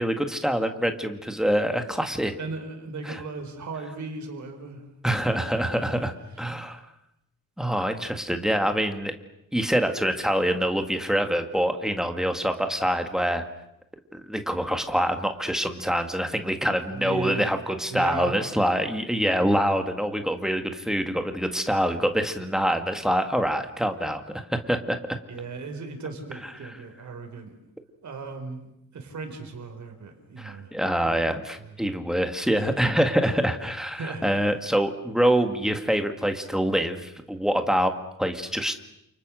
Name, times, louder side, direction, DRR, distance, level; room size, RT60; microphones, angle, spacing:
voice 1, 0.0-2.4 3.0-3.2 5.0-6.8 7.6-9.1 9.5-13.5 14.1-24.2 24.5-25.0 26.6-26.8 30.4-38.7, equal, ahead, 6 dB, 2.1 m, -25 dB
voice 2, 2.4-4.8 5.1-5.4 16.6-17.5 17.9-18.4 19.5-19.7 25.3-27.5 28.0-30.7 31.0-31.2 31.8-31.9 34.0-34.2, right 4 dB, 60° right, 5 dB, 4.8 m, -37 dB
30.0 x 28.5 x 6.5 m, 0.84 s
wide cardioid pair, 175°, 32 cm